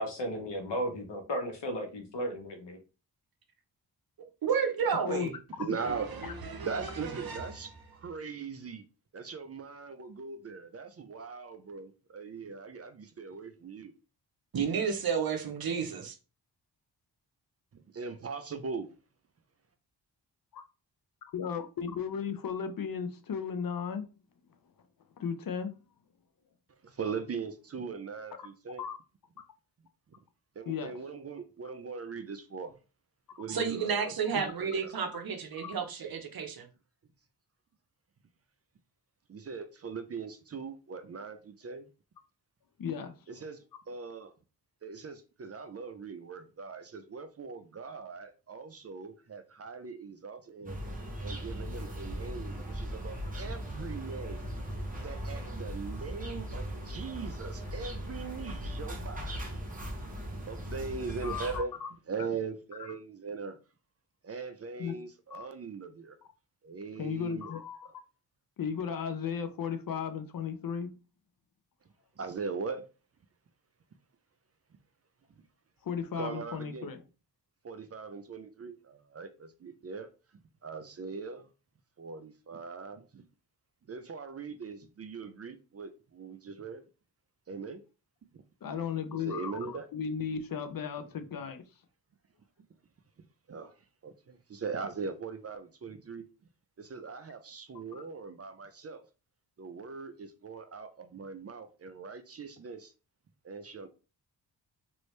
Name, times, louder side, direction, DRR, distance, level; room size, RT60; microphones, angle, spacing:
voice 1, 0.0-2.8, equal, 75° left, 1.0 m, -35 dB
voice 2, 4.4-5.3 5.9-6.0 6.2-6.7 7.0-7.4 14.5-16.1 33.5-36.7, right 6 dB, 55° right, 0.8 m, -31 dB
voice 3, 5.6-6.1 6.6-8.8 9.1-13.9 17.7-18.9 26.8-28.8 30.6-32.8 33.4-34.9 39.3-41.9 43.3-44.3 44.8-50.8 51.2-54.5 55.0-59.5 60.5-61.7 62.1-63.6 64.2-66.2 66.6-67.5 67.9-68.0 72.2-72.9 76.2-76.9 77.6-80.1 80.6-81.5 82.0-83.2 83.9-86.8 87.5-87.8 88.3-88.4 89.2-89.9 93.5-93.8 94.0-96.2 96.8-99.0 99.6-102.9 103.4-103.9, right 5 dB, 35° right, 0.4 m, -40 dB
voice 4, 21.3-24.1 25.2-25.7 28.8-29.0 30.7-30.9 33.3-33.6 34.3-34.4 35.6-35.8 42.8-43.2 61.2-61.9 64.8-64.9 65.3-65.5 67.0-67.9 68.6-70.9 75.8-77.0 88.6-89.6 89.9-91.6, left 7 dB, 55° left, 0.6 m, -35 dB
sound 1, 50.6-61.6, equal, 20° right, 1.0 m, -38 dB
3.1 x 2.6 x 3.1 m
cardioid pair, 85°, 42 cm